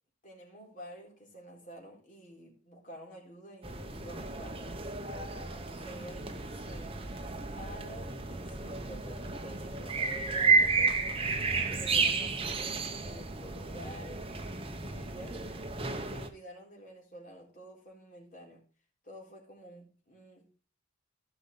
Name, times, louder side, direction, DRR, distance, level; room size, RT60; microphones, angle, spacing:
voice 1, 0.2-6.9 7.5-11.3 11.7-14.2 14.7-15.4 16.1-18.6 19.0-20.5, right 1 dB, 40° left, -1 dB, 3.8 m, -50 dB
sound 1, 3.6-16.3, right 4 dB, 30° right, 1.0 m, -32 dB
15.5 x 5.6 x 3.9 m, 0.37 s
head